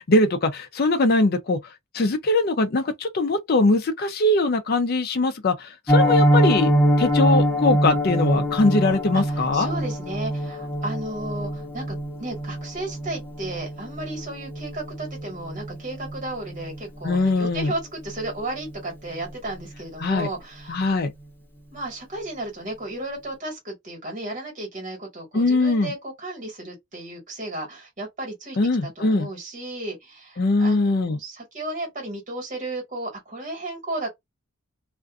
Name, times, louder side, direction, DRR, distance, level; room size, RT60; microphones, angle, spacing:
voice 1, 0.1-1.6 1.9-6.7 7.0-9.7 17.0-17.7 20.0-20.3 20.7-21.1 25.3-25.9 28.6-29.3 30.4-31.2, left 2 dB, 45° left, 0.4 m, -21 dB
Piano, 5.9-16.8 17.0-17.3 17.6-17.7 18.1-18.3 18.6-18.7, equal, 10° left, 0.9 m, -24 dB
voice 2, 9.1-20.9 21.7-28.6 29.0-34.1, right 2 dB, 35° right, 1.5 m, -34 dB
2.5 x 2.4 x 2.3 m
head